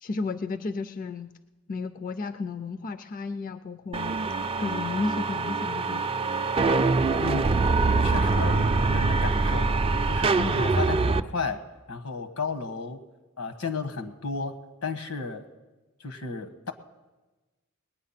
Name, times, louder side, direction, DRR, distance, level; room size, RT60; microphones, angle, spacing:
voice 1, 0.0-1.3 1.7-4.2 4.6-6.0, left 3 dB, 40° left, 11 dB, 0.4 m, -33 dB
sound 1, 3.9-11.2, right 3 dB, 25° right, 0.4 m, -24 dB
voice 2, 7.2-7.7 8.0-9.7 10.1-11.6 11.9-13.0 13.4-14.5 14.8-15.4 16.0-16.7, left 4 dB, 85° left, 7 dB, 1.3 m, -33 dB
20.0 x 9.1 x 5.8 m, 1.2 s
head